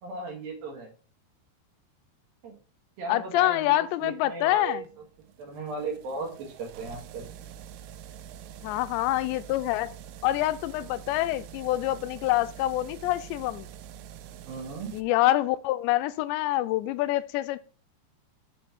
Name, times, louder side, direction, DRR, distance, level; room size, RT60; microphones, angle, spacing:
voice 1, 0.0-0.9 2.4-2.6 3.0-4.8 5.4-7.3 14.5-15.0, right 3 dB, 65° right, 3.0 m, -36 dB
voice 2, 3.1-4.8 8.6-9.9 10.2-13.7 14.9-17.6, left 16 dB, 85° left, 2.8 m, -26 dB
sound 1, 4.7-15.0, right 9 dB, 80° right, 2.3 m, -45 dB
7.4 x 4.3 x 5.8 m
omnidirectional pair, 5.0 m